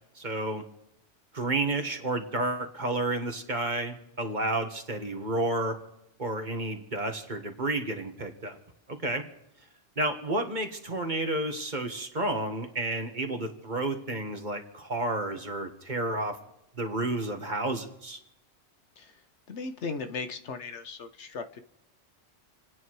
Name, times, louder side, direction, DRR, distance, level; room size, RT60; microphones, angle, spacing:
voice 1, 0.2-0.6 1.3-5.8 6.2-8.6 8.9-9.2 10.0-16.4 16.8-18.2, right 2 dB, 40° right, 5 dB, 1.8 m, -31 dB
voice 2, 19.5-21.6, left 4 dB, 75° left, 9 dB, 1.3 m, -37 dB
28.5 x 9.7 x 4.8 m, 0.83 s
omnidirectional pair, 1.2 m